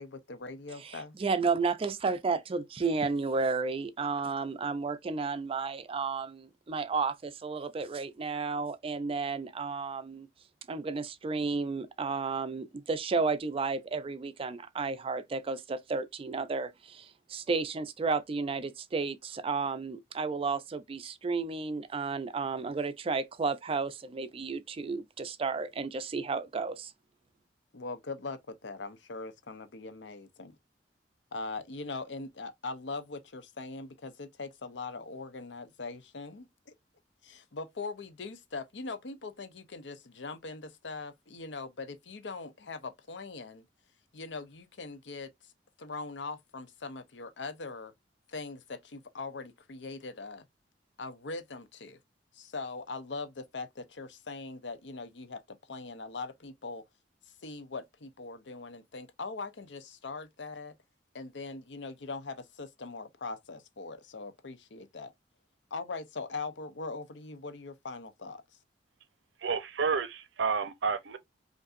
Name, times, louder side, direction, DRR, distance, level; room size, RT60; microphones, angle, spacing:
voice 1, 0.0-1.2 27.7-30.6 31.3-36.7 37.2-43.7 44.1-45.5 45.8-47.9 48.3-50.4 51.0-52.0 52.3-56.8 57.4-60.7 61.1-65.1 65.7-68.4, left 3 dB, 80° left, 0.7 m, -41 dB
voice 2, 0.8-10.3 10.7-26.9, right 4 dB, 30° right, 0.4 m, -32 dB
voice 3, 69.4-71.2, right 5 dB, 85° right, 0.6 m, -30 dB
5.1 x 2.6 x 2.5 m
head